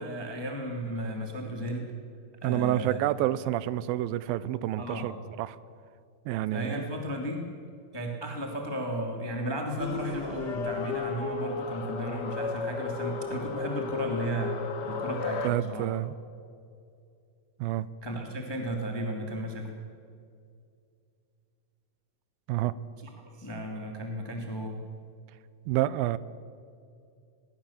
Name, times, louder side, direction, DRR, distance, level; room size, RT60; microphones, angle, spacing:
voice 1, 0.0-1.9 2.4-3.0 4.8-5.1 6.5-7.4 7.9-14.5 14.8-15.9 18.0-19.7 23.4-24.8, right 1 dB, 10° left, 1 dB, 1.9 m, -34 dB
voice 2, 2.4-5.6 6.3-6.8 15.4-16.2 17.6-17.9 22.5-22.7 25.7-26.2, right 14 dB, 85° right, 17 dB, 2.5 m, -28 dB
sound 1, 9.8-15.5, left 5 dB, 50° left, 1.2 m, -34 dB
21.5 x 21.5 x 7.3 m, 2.4 s
omnidirectional pair, 4.2 m